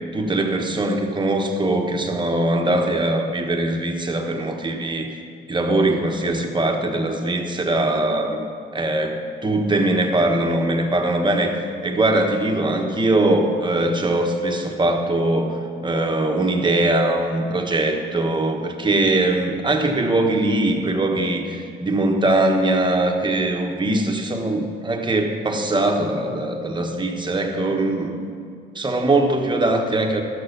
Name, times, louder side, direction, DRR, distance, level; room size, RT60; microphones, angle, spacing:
voice 1, 0.1-5.1 5.5-8.5 8.7-15.6 15.8-28.2 28.7-30.2, right 2 dB, 25° right, 3 dB, 1.4 m, -21 dB
12.5 x 6.8 x 6.8 m, 2.3 s
cardioid pair, 90°, 20 cm